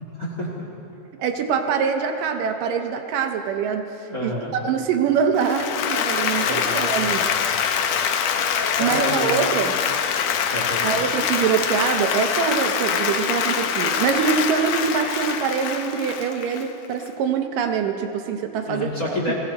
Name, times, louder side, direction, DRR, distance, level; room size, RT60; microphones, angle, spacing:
voice 1, 0.1-0.7 4.1-4.5 6.4-7.2 8.2-8.4 8.7-9.4 10.5-11.0 18.7-19.3, left 1 dB, 30° left, -4 dB, 1.9 m, -29 dB
voice 2, 1.2-7.2 8.8-9.7 10.8-19.3, right 7 dB, 75° right, 5 dB, 2.3 m, -24 dB
Applause, 5.3-17.1, left 7 dB, 80° left, 1.5 m, -24 dB
21.5 x 16.0 x 4.2 m, 2.8 s
omnidirectional pair, 4.0 m